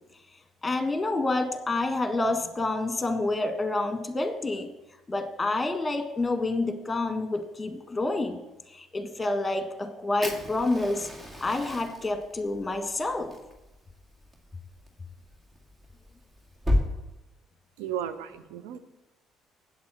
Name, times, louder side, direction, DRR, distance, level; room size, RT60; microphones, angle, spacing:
voice 1, 0.6-4.7 5.1-8.4 8.7-11.1 11.4-13.3, left 2 dB, 20° left, 6 dB, 1.7 m, -28 dB
Fire, 10.2-16.9, left 1 dB, 35° right, 2.2 m, -34 dB
voice 2, 17.8-18.8, right 10 dB, 75° right, 11 dB, 0.7 m, -34 dB
8.2 x 8.0 x 6.5 m, 1.0 s
hypercardioid pair, 55°, 0 cm